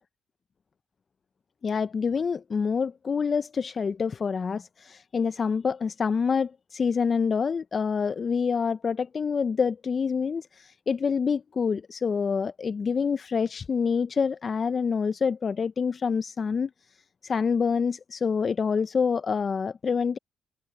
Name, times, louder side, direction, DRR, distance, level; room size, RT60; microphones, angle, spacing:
voice 1, 1.6-16.7 17.2-20.2, left 5 dB, 40° left, 0.4 m, -27 dB
cardioid pair, 90°, 0 cm